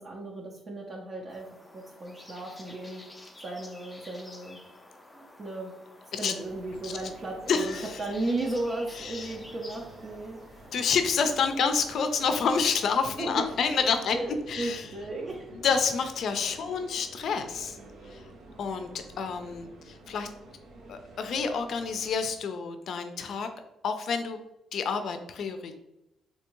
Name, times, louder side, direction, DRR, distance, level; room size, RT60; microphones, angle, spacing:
voice 1, 0.0-3.0 3.4-4.6 5.1-5.7 6.0-10.7 13.2-13.5 14.1-15.5 16.7-16.8, right 2 dB, 40° right, -1 dB, 0.6 m, -35 dB
sound 1, 1.3-13.0, left 1 dB, 15° left, 0.5 m, -50 dB
sound 2, 6.4-22.1, right 2 dB, 85° right, 0.8 m, -50 dB
voice 2, 7.5-8.0 9.0-9.4 10.7-14.9 15.5-17.8 18.0-18.3 18.6-20.3 20.9-23.5 23.8-24.4 24.7-25.7, left 5 dB, 65° left, 8 dB, 0.4 m, -28 dB
3.4 x 2.8 x 3.0 m, 0.90 s
cardioid pair, 90°, 0 cm